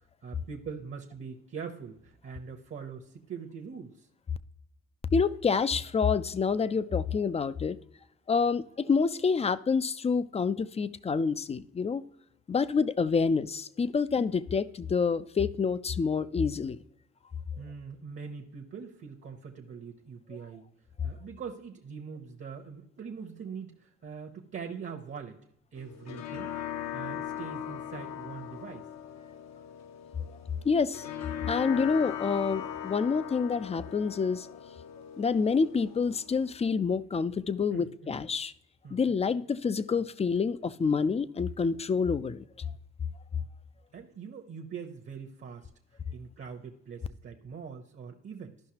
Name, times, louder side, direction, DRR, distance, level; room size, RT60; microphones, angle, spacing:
voice 1, 0.2-4.1 17.6-20.7 21.0-25.4 25.7-26.6 26.9-28.9 37.7-38.1 38.8-39.0 43.9-45.7 46.1-48.6, right 6 dB, 40° right, 0.9 m, -42 dB
voice 2, 5.1-7.8 8.3-12.0 12.5-16.8 30.6-31.1 31.5-34.5 35.2-38.5 38.9-42.4, left 5 dB, 20° left, 0.4 m, -27 dB
sound 1, 25.8-36.7, left 9 dB, 60° left, 0.7 m, -39 dB
12.5 x 5.6 x 2.9 m
cardioid pair, 90°, 30 cm